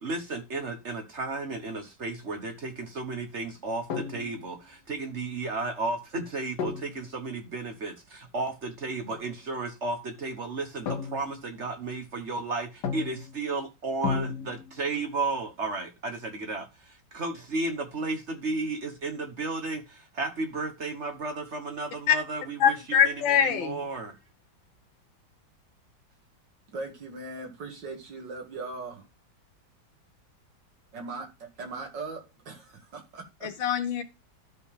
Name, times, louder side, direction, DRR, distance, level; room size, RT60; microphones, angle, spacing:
voice 1, 0.0-24.2, right 3 dB, 40° right, 1.3 m, -33 dB
sound 1, 3.9-4.6 6.6-7.2 9.1-9.3 10.9-11.6 12.8-13.5 14.0-15.0, left 6 dB, 65° left, 1.5 m, -34 dB
voice 2, 22.6-23.8 33.4-34.0, left 8 dB, 80° left, 1.9 m, -23 dB
voice 3, 26.7-29.1 30.9-32.6 32.9-33.5, right 3 dB, 65° right, 2.5 m, -39 dB
12.5 x 5.4 x 3.4 m
omnidirectional pair, 2.1 m